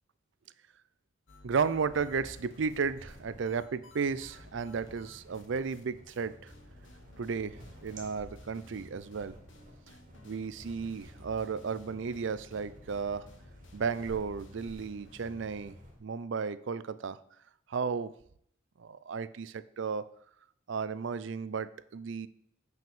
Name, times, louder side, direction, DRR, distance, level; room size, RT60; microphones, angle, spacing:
sound 1, 1.3-5.8 6.1-6.2 6.5-15.7, left 1 dB, 70° left, 1.2 m, -55 dB
voice 1, 1.4-6.5 7.2-9.4 10.2-13.3 13.7-15.8 16.0-17.2 17.7-18.1 18.8-20.0 20.7-22.3, right 5 dB, 65° right, 15 dB, 0.4 m, -34 dB
sound 2, 1.7-16.0, equal, 45° right, 2.3 m, -53 dB
5.9 x 5.7 x 7.0 m, 0.67 s
head